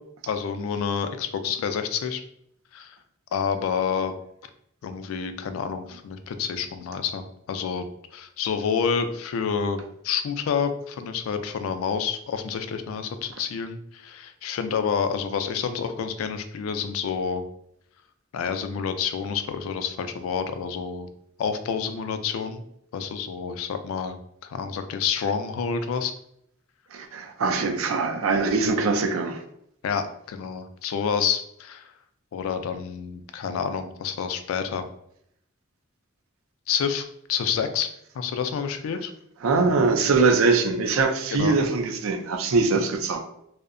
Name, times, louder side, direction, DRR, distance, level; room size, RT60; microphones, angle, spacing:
voice 1, 0.3-2.2 2.7-3.0 3.3-4.1 4.8-7.8 8.1-17.4 18.3-21.1 21.4-22.6 22.9-24.2 24.4-26.1 29.8-31.9 32.3-34.8 36.7-37.9 38.2-39.1 41.3-41.6, left 6 dB, 80° left, 10 dB, 0.3 m, -28 dB
voice 2, 26.9-29.4 39.4-43.2, right 4 dB, 85° right, 5 dB, 0.4 m, -22 dB
2.6 x 2.0 x 2.5 m, 0.74 s
head